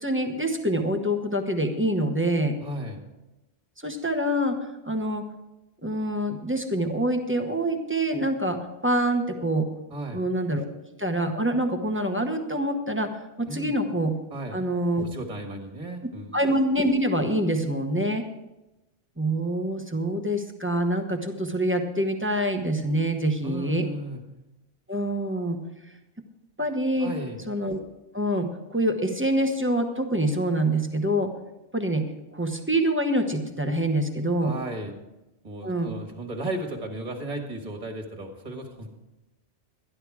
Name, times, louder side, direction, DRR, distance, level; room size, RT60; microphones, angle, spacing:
voice 1, 0.0-2.5 3.8-4.6 4.8-5.2 5.8-9.7 10.1-10.6 11.0-13.1 13.4-14.1 14.5-15.0 16.3-18.3 19.2-23.9 24.9-25.6 26.6-27.1 27.5-27.8 28.1-31.3 31.7-32.0 32.3-34.5 35.6-35.9, right 1 dB, 10° right, 4 dB, 1.0 m, -25 dB
voice 2, 2.6-3.0 9.9-10.2 13.5-13.7 14.3-14.6 15.0-16.3 23.4-24.2 27.0-27.4 34.4-34.9 35.4-38.9, right 1 dB, 35° right, 3 dB, 1.8 m, -35 dB
12.5 x 11.0 x 4.8 m, 0.99 s
omnidirectional pair, 1.2 m